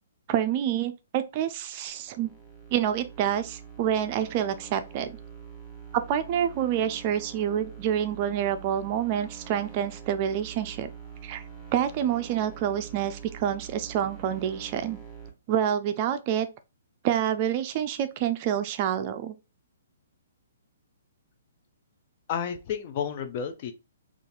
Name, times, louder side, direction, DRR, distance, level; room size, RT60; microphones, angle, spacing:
voice 1, 0.3-2.3 2.7-5.1 5.9-10.9 11.2-11.4 11.7-15.0 15.5-16.5 17.0-19.3, right 10 dB, 35° right, 0.4 m, -27 dB
sound 1, 1.9-15.3, right 7 dB, ahead, 0.9 m, -45 dB
voice 2, 22.3-23.7, left 7 dB, 40° left, 0.5 m, -31 dB
2.6 x 2.4 x 3.8 m
hypercardioid pair, 145°, 0 cm